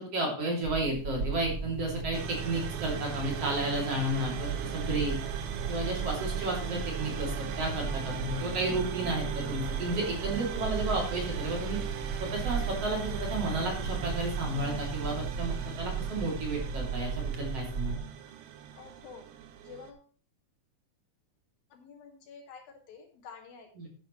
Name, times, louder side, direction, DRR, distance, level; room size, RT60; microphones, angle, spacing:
voice 1, 0.0-5.2 5.7-11.8 12.2-18.0 23.8-23.9, right 1 dB, 45° right, -1 dB, 3.6 m, -32 dB
sound 1, 0.6-18.0, right 6 dB, 60° right, 1.1 m, -36 dB
sound 2, 2.1-19.9, right 8 dB, 90° right, 2.9 m, -39 dB
voice 2, 18.8-19.3 19.6-20.1 21.7-23.7, left 6 dB, 75° left, 1 dB, 4.1 m, -49 dB
11.0 x 11.0 x 3.1 m, 0.38 s
omnidirectional pair, 4.2 m